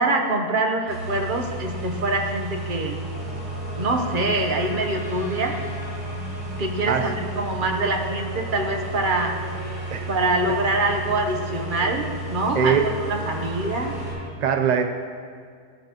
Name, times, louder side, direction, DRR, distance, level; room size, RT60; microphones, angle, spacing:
voice 1, 0.0-3.0 3.8-5.6 6.6-9.4 10.1-12.8 13.1-14.0, right 2 dB, 40° right, 3 dB, 0.9 m, -24 dB
sound 1, 0.9-14.1, right 1 dB, 85° right, 4.4 m, -33 dB
sound 2, 3.1-14.3, left 1 dB, 15° left, 2.0 m, -39 dB
voice 2, 12.5-12.9 14.4-14.8, right 7 dB, 60° right, 5 dB, 0.4 m, -21 dB
15.0 x 11.0 x 3.0 m, 2.1 s
omnidirectional pair, 1.8 m